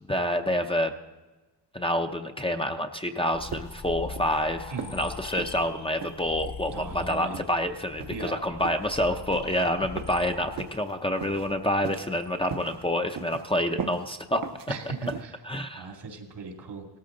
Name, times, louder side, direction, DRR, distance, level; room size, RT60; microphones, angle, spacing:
voice 1, 0.1-0.9 1.7-14.5 15.4-15.9, equal, 15° left, 5 dB, 0.6 m, -28 dB
sound 1, 3.3-12.9, left 5 dB, 70° left, 1.0 m, -43 dB
sound 2, 3.5-3.9 4.2-4.4 4.8-5.0 5.4-5.6 6.0-6.2 6.7-6.9 7.3-7.5 8.0-8.3 8.6-8.9 9.3-9.5 10.0-10.2 10.6-10.8 11.2-11.5 11.8-12.2 12.5-12.8 13.1-13.4 13.8-14.0 14.4-14.7 15.1-15.2, right 7 dB, 55° right, 0.7 m, -38 dB
voice 2, 4.7-5.0 6.7-7.4 8.1-8.4 12.5-13.0 13.3-13.4 14.7-15.4 15.7-16.9, right 4 dB, 80° right, 2 dB, 2.6 m, -38 dB
17.5 x 14.0 x 3.8 m, 1.2 s
wide cardioid pair, 155°, 42 cm